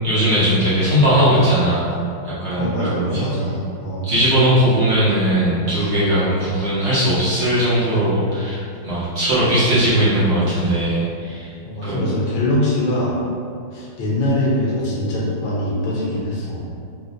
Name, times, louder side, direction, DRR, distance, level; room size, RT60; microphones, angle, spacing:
voice 1, 0.0-2.0 2.2-3.3 4.0-11.5 11.8-12.0, right 1 dB, 85° right, -10 dB, 0.6 m, -18 dB
voice 2, 2.5-4.1 11.7-13.2 13.7-16.7, left 1 dB, 70° left, -6 dB, 1.4 m, -23 dB
4.9 x 2.0 x 2.6 m, 2.4 s
omnidirectional pair, 2.2 m